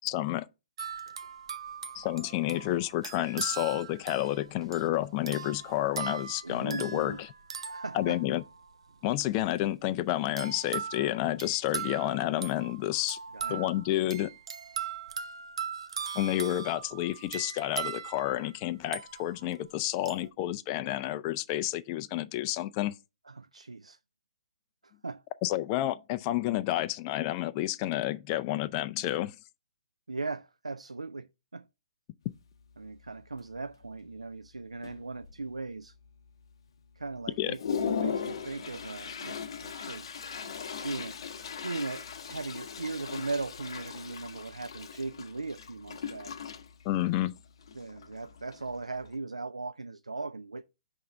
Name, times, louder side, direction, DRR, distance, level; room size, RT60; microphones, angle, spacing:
voice 1, 0.0-0.5 1.9-7.3 7.9-8.4 9.0-13.2 13.5-14.3 16.1-23.0 25.4-29.4 37.4-37.5 46.8-47.4, left 14 dB, 25° left, 0.3 m, -30 dB
sound 1, 0.8-8.6 10.4-19.6 20.0-20.3, right 7 dB, 55° right, 0.7 m, -40 dB
voice 2, 6.4-7.2 7.7-8.2 13.3-13.7 23.3-24.0 24.8-25.2 30.1-31.7 32.8-36.0 37.0-37.6 38.0-40.1 40.8-46.4 47.7-50.6, right 3 dB, 80° right, 0.3 m, -38 dB
Toilet flush, 32.3-32.4 32.8-33.1 33.4-33.9 34.5-34.6 34.8-35.6 36.1-36.2 36.7-36.8 37.2-49.2, left 6 dB, 50° left, 0.7 m, -38 dB
5.6 x 3.5 x 5.1 m
figure-of-eight pair, 130°, 3 cm